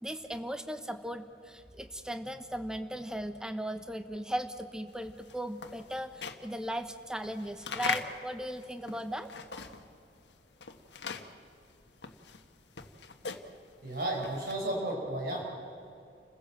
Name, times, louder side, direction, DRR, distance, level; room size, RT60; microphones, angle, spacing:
voice 1, 0.0-9.3, equal, 5° right, 8 dB, 1.0 m, -37 dB
sound 1, 5.0-10.0 10.3-14.8, left 5 dB, 80° left, 1.4 m, -40 dB
voice 2, 13.8-15.6, right 1 dB, 55° right, -1 dB, 5.8 m, -33 dB
29.0 x 15.5 x 7.6 m, 2.5 s
head